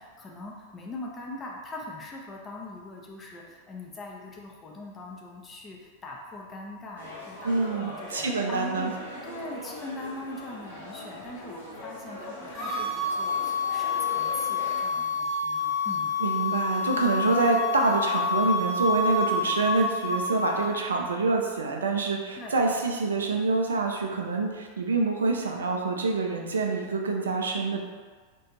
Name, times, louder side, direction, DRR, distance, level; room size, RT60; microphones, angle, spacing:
voice 1, 0.0-9.0 9.2-16.1 22.4-22.6, left 2 dB, 20° left, -2 dB, 0.4 m, -41 dB
sound 1, 7.0-14.8, left 1 dB, 75° left, 0.8 m, -41 dB
voice 2, 7.4-8.9 16.2-27.8, right 3 dB, 70° right, 2 dB, 0.3 m, -26 dB
sound 2, 12.5-20.7, left 4 dB, ahead, 1.0 m, -28 dB
2.4 x 2.2 x 3.0 m, 1.5 s
figure-of-eight pair, 90°, 0 cm